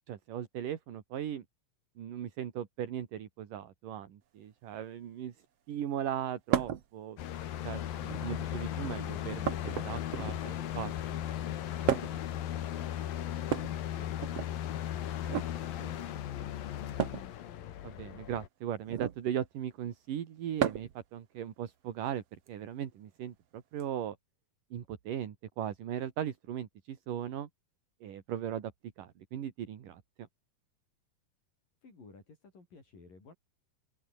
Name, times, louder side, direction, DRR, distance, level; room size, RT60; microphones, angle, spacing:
voice 1, 0.1-1.5 2.0-5.3 5.7-7.2 7.6-7.9 8.2-10.9 15.8-15.9 17.8-24.2 24.7-27.5 28.0-28.7 29.0-30.0, right 10 dB, 70° right, 3.6 m, -38 dB
sound 1, 6.5-6.9 7.9-8.4 9.4-10.5 11.9-12.3 13.4-14.5 15.2-15.5 17.0-17.3 18.9-19.2 20.6-21.0 22.5-22.6 23.8-23.9, right 10 dB, 55° right, 2.1 m, -33 dB
sound 2, 7.2-18.5, left 11 dB, 90° left, 3.5 m, -37 dB
voice 2, 31.8-33.3, left 3 dB, 70° left, 9.7 m, -55 dB
open air
omnidirectional pair, 4.0 m